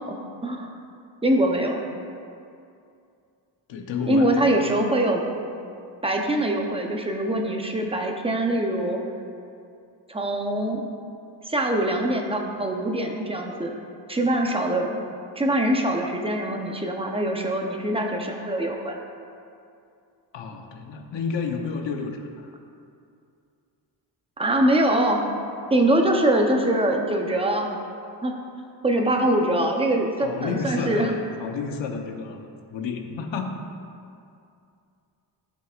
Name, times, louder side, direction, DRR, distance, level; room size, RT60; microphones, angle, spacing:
voice 1, 0.1-0.7 1.2-1.8 4.1-5.2 6.0-9.0 10.1-10.9 11.4-13.8 14.1-15.0 15.3-19.0 24.4-25.2 25.7-27.7 28.2-28.4 28.8-31.1, right 1 dB, 15° right, 1 dB, 0.7 m, -23 dB
voice 2, 3.7-4.5 20.3-22.3 29.2-29.4 30.2-32.4 32.7-33.6, left 5 dB, 80° left, 3 dB, 1.0 m, -30 dB
14.5 x 6.1 x 2.5 m, 2.5 s
wide cardioid pair, 130°, 44 cm